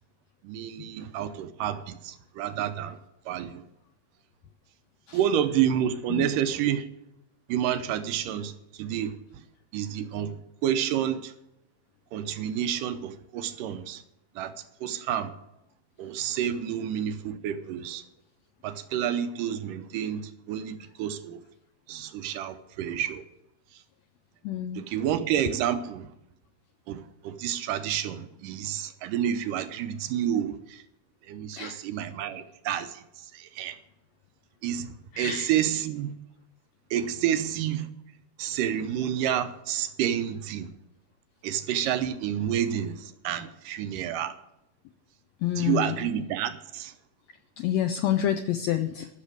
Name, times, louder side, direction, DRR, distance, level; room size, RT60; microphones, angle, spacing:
voice 1, 0.4-3.0 3.3-3.6 5.1-6.9 7.5-9.2 9.7-11.3 12.1-14.0 14.4-14.5 14.8-15.3 16.0-18.0 18.6-21.4 21.9-23.2 24.8-26.1 26.9-30.8 31.3-33.0 33.3-33.8 34.6-34.9 35.2-36.2 36.9-37.9 38.4-40.7 41.4-44.4 45.6-46.9, right 10 dB, 85° right, 2.4 m, -29 dB
voice 2, 24.4-24.8 31.6-31.8 35.1-35.5 45.4-45.9 47.6-49.1, left 11 dB, 90° left, 1.5 m, -28 dB
13.5 x 6.7 x 9.2 m
omnidirectional pair, 3.8 m